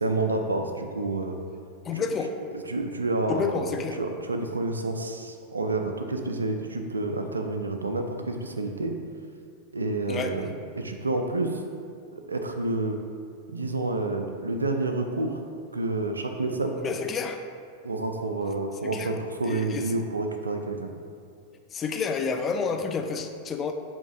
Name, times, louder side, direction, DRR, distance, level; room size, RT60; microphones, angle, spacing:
voice 1, 0.0-1.4 1.9-2.0 2.7-3.7 3.9-9.0 9.7-10.5 10.7-11.6 12.1-13.0 13.5-15.4 15.7-16.7 17.8-20.9, right 2 dB, 75° right, 5 dB, 0.3 m, -29 dB
voice 2, 1.9-2.3 3.3-4.0 10.1-10.3 16.8-17.4 18.9-19.1 19.4-19.9 21.7-23.7, left 5 dB, 25° left, 5 dB, 0.3 m, -29 dB
7.0 x 3.0 x 2.5 m, 2.4 s
figure-of-eight pair, 90°, 0 cm